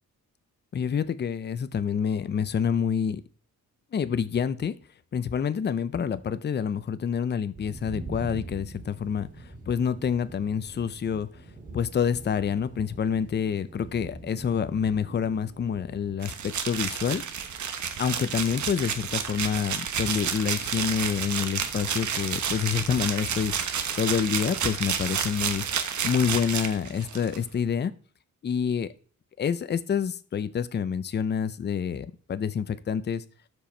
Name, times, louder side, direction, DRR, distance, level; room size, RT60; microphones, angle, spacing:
voice 1, 0.7-3.2 3.9-4.7 5.1-9.3 9.7-11.3 11.7-17.2 18.0-23.5 24.0-25.6 26.0-27.9 28.4-28.9 29.4-33.2, left 7 dB, 35° left, 13 dB, 0.6 m, -27 dB
sound 1, 7.5-16.2, right 2 dB, 25° right, 2.6 m, -44 dB
sound 2, 16.2-27.4, right 7 dB, 60° right, 1.1 m, -30 dB
12.5 x 4.9 x 4.4 m, 0.42 s
wide cardioid pair, 145°, 32 cm